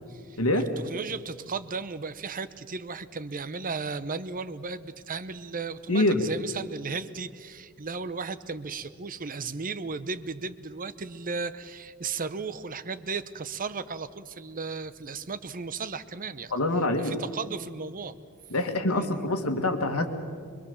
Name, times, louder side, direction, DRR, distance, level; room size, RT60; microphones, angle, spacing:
voice 1, 0.1-16.5 17.0-18.1 18.9-19.3, right 4 dB, 40° right, 14 dB, 0.7 m, -35 dB
voice 2, 5.9-6.2 16.5-17.1 18.5-20.1, left 2 dB, 75° left, 5 dB, 2.1 m, -25 dB
24.5 x 22.5 x 7.1 m, 2.1 s
head